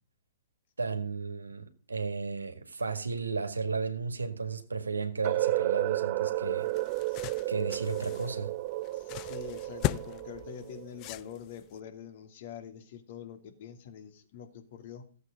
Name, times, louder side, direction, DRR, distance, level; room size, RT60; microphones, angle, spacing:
voice 1, 0.8-6.7 7.5-8.5, right 4 dB, 80° right, 1.9 m, -34 dB
sound 1, 5.2-11.1, right 17 dB, 40° right, 0.5 m, -32 dB
sound 2, 6.3-11.8, left 17 dB, 35° left, 0.5 m, -39 dB
voice 2, 8.9-15.0, left 9 dB, 50° left, 2.6 m, -45 dB
15.0 x 8.1 x 5.2 m
figure-of-eight pair, 115°, 0 cm